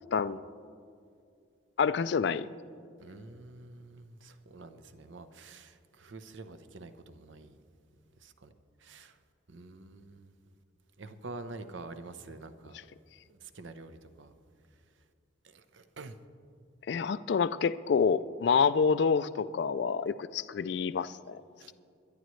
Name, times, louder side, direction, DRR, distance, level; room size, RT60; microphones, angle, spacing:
voice 1, 1.8-2.5 16.9-21.4, left 6 dB, 60° left, 15 dB, 0.3 m, -27 dB
voice 2, 3.0-7.6 8.2-8.5 8.8-9.1 9.5-10.3 11.0-12.7 13.3-14.3 15.5-16.2 21.6-21.7, right 3 dB, 70° right, 10 dB, 0.7 m, -47 dB
21.5 x 11.5 x 3.1 m, 2.4 s
head